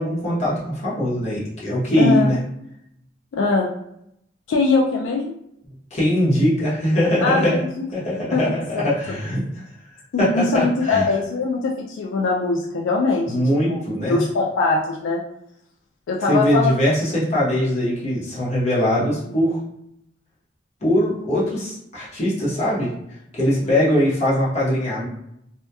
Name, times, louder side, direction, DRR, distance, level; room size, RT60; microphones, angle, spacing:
voice 1, 0.0-2.4 5.9-7.6 7.9-9.4 10.2-11.1 13.3-14.2 16.3-19.6 20.8-22.9 23.3-25.0, equal, 35° left, -8 dB, 0.9 m, -21 dB
voice 2, 2.0-2.3 3.3-3.7 4.5-5.3 7.2-7.4 7.8-7.9 8.3-8.4 8.7-8.9 10.1-13.3 13.7-13.8 14.1-15.2 16.1-16.7 23.6-23.7, left 3 dB, 75° left, -1 dB, 0.3 m, -21 dB
2.7 x 2.1 x 2.2 m, 0.76 s
head